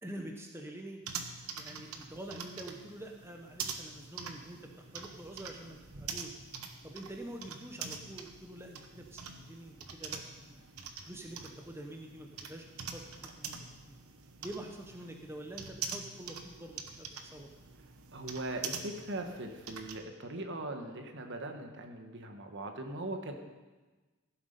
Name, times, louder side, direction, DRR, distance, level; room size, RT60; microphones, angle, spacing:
voice 1, 0.0-1.0 1.5-6.3 6.8-10.6 11.1-12.6 12.9-13.6 13.8-13.9 14.4-17.5, right 1 dB, 10° right, 2 dB, 0.8 m, -46 dB
sound 1, 1.0-20.0, right 6 dB, 70° right, 1.1 m, -45 dB
voice 2, 18.1-23.4, right 1 dB, 55° right, 5 dB, 1.3 m, -40 dB
15.0 x 7.9 x 5.3 m, 1.2 s
head